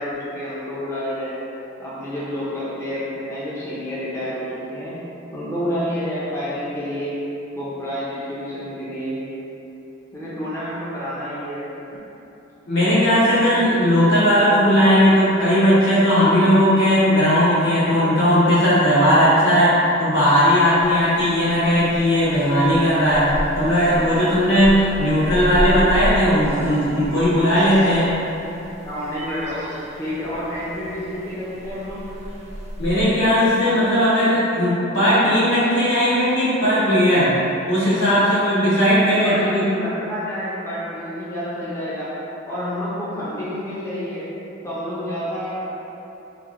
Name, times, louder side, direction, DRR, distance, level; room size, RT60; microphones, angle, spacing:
voice 1, 0.0-1.4 1.8-5.0 5.3-7.2 7.5-9.2 10.1-11.7 28.8-32.0 39.2-42.1 42.4-44.3 44.6-45.7, equal, 15° left, -10 dB, 0.6 m, -29 dB
voice 2, 12.7-28.1 32.8-37.3 37.7-39.6, equal, 75° left, -11 dB, 1.4 m, -17 dB
sound 1, 20.8-33.0, equal, 35° right, 0.4 m, -32 dB
3.3 x 2.6 x 3.7 m, 3.0 s
head